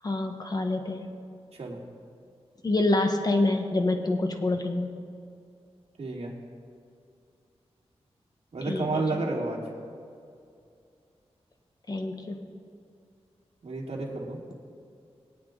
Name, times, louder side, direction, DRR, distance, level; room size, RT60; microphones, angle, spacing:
voice 1, 0.0-1.1 2.6-4.9 8.6-9.2 11.9-12.4, left 2 dB, 35° left, 4 dB, 1.3 m, -27 dB
voice 2, 6.0-6.3 8.5-9.6 13.6-14.4, right 3 dB, 65° right, -3 dB, 2.7 m, -31 dB
22.5 x 8.6 x 3.9 m, 2.4 s
wide cardioid pair, 120°, 11 cm